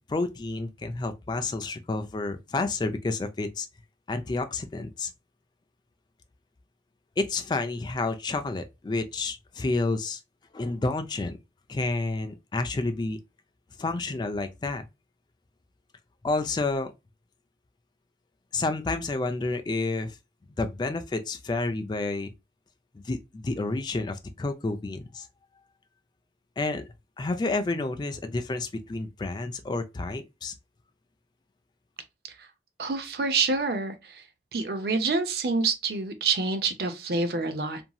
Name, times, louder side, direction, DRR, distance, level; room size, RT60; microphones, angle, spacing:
voice 1, 0.1-3.7 4.1-5.1 7.2-10.2 10.5-11.4 11.7-13.2 13.8-14.8 16.2-16.9 18.5-20.2 20.6-22.3 22.9-25.3 26.6-26.9 27.2-30.5, left 3 dB, 25° left, 0.3 m, -30 dB
voice 2, 32.8-34.2 34.5-37.8, right 4 dB, 60° right, 0.5 m, -27 dB
2.9 x 2.6 x 2.2 m
head